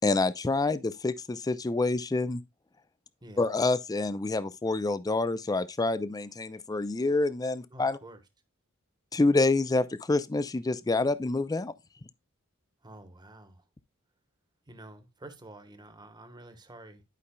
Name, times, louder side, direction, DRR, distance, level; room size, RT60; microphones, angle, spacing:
voice 1, 0.0-2.4 3.4-8.0 9.1-11.7, left 2 dB, 15° left, 0.4 m, -27 dB
voice 2, 3.2-3.5 7.7-8.2 12.8-13.6 14.7-17.0, right 1 dB, 20° right, 1.1 m, -49 dB
11.5 x 5.4 x 2.3 m
head